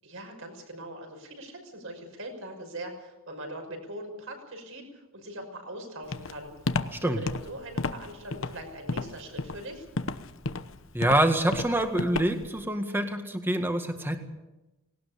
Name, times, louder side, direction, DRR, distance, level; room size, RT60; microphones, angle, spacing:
voice 1, 0.0-6.5 7.0-9.9, right 1 dB, 65° right, 4 dB, 6.1 m, -41 dB
Walk footsteps, 6.1-12.6, left 3 dB, 60° left, 1.0 m, -32 dB
voice 2, 10.9-14.2, right 1 dB, 10° right, 5 dB, 1.8 m, -26 dB
19.5 x 18.5 x 8.4 m, 0.99 s
head